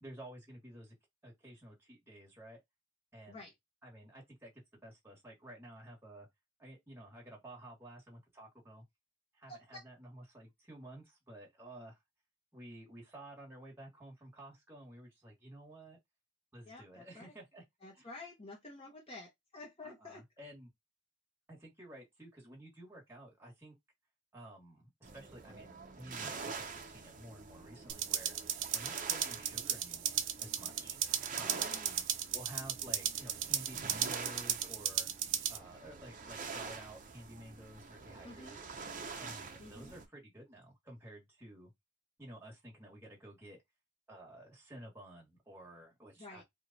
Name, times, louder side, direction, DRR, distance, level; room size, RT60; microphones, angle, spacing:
voice 1, 0.0-0.9 1.2-2.6 3.1-3.5 3.8-4.5 4.8-6.3 6.6-8.8 9.3-12.0 12.5-16.0 16.5-17.6 18.0-18.1 19.8-20.7 21.5-23.8 24.3-28.4 28.7-31.0 31.3-31.7 32.3-35.1 35.5-38.6 39.2-41.7 42.2-43.6 44.1-46.4, right 1 dB, 15° right, 1.3 m, -52 dB
voice 2, 9.5-9.8 16.7-17.3 17.8-20.2 31.4-32.0 38.2-38.6 39.6-39.9 46.2-46.4, left 2 dB, 30° left, 0.8 m, -50 dB
sound 1, 25.0-40.1, right 5 dB, 45° right, 0.6 m, -46 dB
sound 2, 27.9-35.6, right 11 dB, 90° right, 0.5 m, -36 dB
3.1 x 2.3 x 3.8 m
head